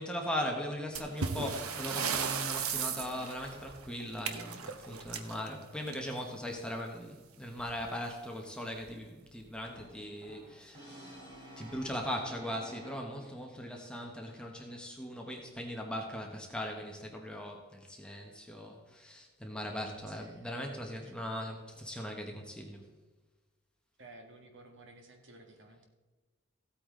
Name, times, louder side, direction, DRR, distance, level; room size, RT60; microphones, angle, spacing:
voice 1, 0.0-11.2 11.6-22.9, equal, 5° left, 1 dB, 1.2 m, -39 dB
sound 1, 1.0-6.3 7.6-7.8 8.1-8.2 8.8-8.9 9.6-9.9, right 6 dB, 80° right, 0.9 m, -36 dB
Brass instrument, 9.7-13.5, equal, 20° right, 3.8 m, -52 dB
voice 2, 20.1-20.5 24.0-25.8, right 2 dB, 55° right, 3 dB, 1.7 m, -54 dB
15.0 x 8.6 x 3.8 m, 1.3 s
head